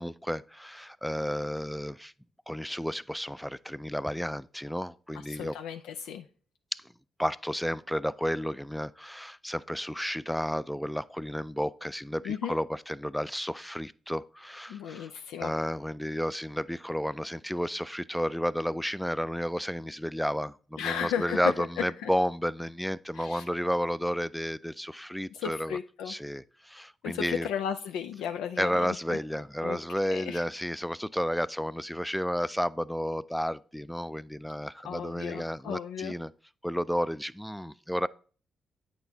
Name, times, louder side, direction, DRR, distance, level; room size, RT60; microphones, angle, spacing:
voice 1, 0.0-2.1 2.5-5.5 6.7-6.8 7.2-15.1 15.4-25.8 26.1-27.5 28.6-36.3 36.6-38.1, equal, ahead, 0.3 m, -32 dB
voice 2, 5.1-6.3 12.2-12.6 14.7-15.5 20.8-22.1 23.1-23.5 25.3-26.1 27.0-29.2 29.6-29.8 30.1-30.4 34.8-36.1, left 8 dB, 80° left, 0.4 m, -35 dB
8.6 x 6.0 x 2.8 m
hypercardioid pair, 50°, 0 cm